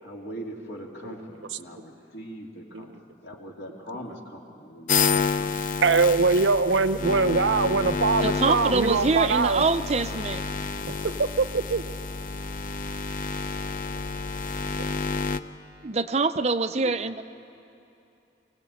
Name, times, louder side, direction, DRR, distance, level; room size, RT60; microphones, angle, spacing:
voice 1, 0.0-2.9 3.2-5.6 16.8-16.9, right 1 dB, 75° left, -1 dB, 2.9 m, -41 dB
sound 1, 4.9-15.4, left 4 dB, 45° left, 0.6 m, -29 dB
voice 2, 5.8-9.6 11.2-11.8, right 4 dB, 90° right, 13 dB, 0.7 m, -22 dB
voice 3, 8.2-10.4 15.8-17.3, right 3 dB, 35° right, 10 dB, 0.5 m, -25 dB
24.0 x 17.5 x 8.5 m, 2.7 s
head